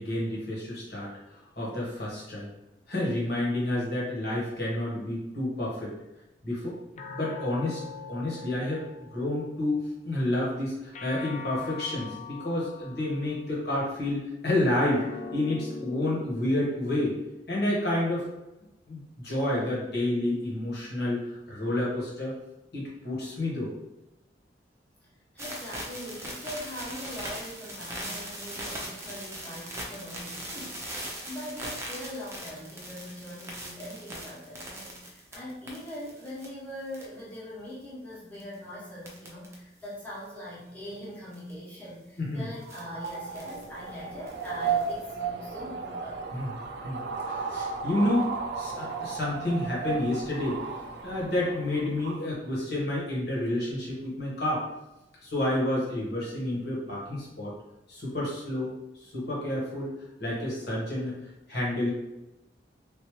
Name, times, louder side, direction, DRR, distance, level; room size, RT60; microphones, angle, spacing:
voice 1, 0.0-2.5 2.9-5.9 6.4-6.8 7.1-7.8 8.1-9.8 10.0-17.2 17.5-18.3 18.9-22.3 22.7-23.7 42.2-42.5 46.3-46.5 46.8-48.3 48.6-50.6 51.0-54.6 55.2-57.5 57.9-58.7 59.0-59.9 60.2-61.1 61.5-61.9, left 1 dB, 60° left, -5 dB, 1.4 m, -29 dB
sound 1, 7.0-9.6 10.9-13.5 14.9-17.5, left 4 dB, 40° left, 0.3 m, -42 dB
voice 2, 25.3-46.3, left 1 dB, 10° left, -8 dB, 1.1 m, -42 dB
sound 2, 25.4-36.5 36.9-37.3 38.3-38.5 39.0-39.5 39.8-39.9 41.3-41.5 42.6-43.6 44.3-45.0, right 1 dB, 15° right, 0.6 m, -40 dB
sound 3, 42.5-52.3, right 5 dB, 65° right, 0.5 m, -34 dB
3.5 x 2.7 x 3.1 m, 0.95 s
head